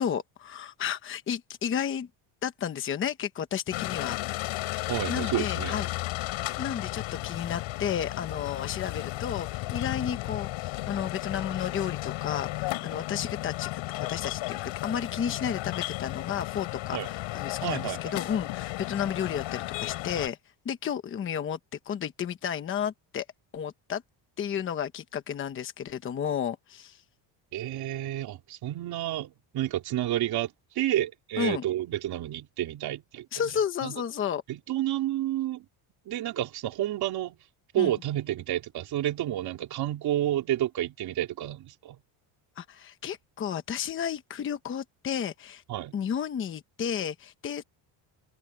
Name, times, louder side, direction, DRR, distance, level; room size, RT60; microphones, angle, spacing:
voice 1, 0.0-2.1 2.4-4.5 5.1-5.9 6.6-13.8 14.1-20.4 20.6-21.6 21.8-23.3 23.5-24.0 24.4-27.0 31.4-31.6 33.3-34.4 37.8-38.0 42.6-45.6 45.9-47.6, left 8 dB, 25° left, 1.0 m, -32 dB
sound 1, 3.7-20.3, left 19 dB, 70° left, 5.5 m, -34 dB
voice 2, 4.9-5.8 16.9-17.1 17.6-18.2 27.5-33.3 33.8-33.9 34.5-35.7 36.1-37.4 37.7-42.0 45.7-45.9, right 13 dB, 50° right, 3.7 m, -30 dB
cardioid pair, 175°, 47 cm